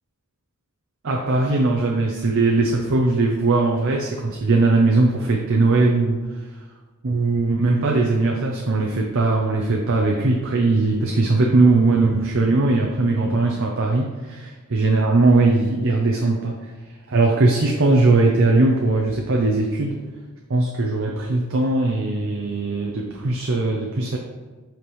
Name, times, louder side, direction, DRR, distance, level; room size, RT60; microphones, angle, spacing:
voice 1, 1.0-6.2 7.0-16.6 17.1-20.0 20.5-24.2, right 3 dB, 65° right, -1 dB, 0.7 m, -19 dB
7.6 x 5.2 x 3.2 m, 1.3 s
head